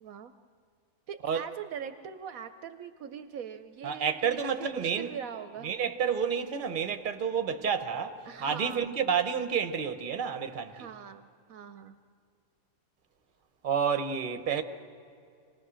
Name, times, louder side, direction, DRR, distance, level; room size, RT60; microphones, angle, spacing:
voice 1, 0.0-0.3 1.1-5.7 8.2-9.0 10.7-12.0, right 8 dB, 70° right, 1.1 m, -42 dB
voice 2, 3.8-5.1 5.6-10.9 13.6-14.6, right 7 dB, 40° right, 1.1 m, -30 dB
27.0 x 19.0 x 6.3 m
omnidirectional pair, 1.6 m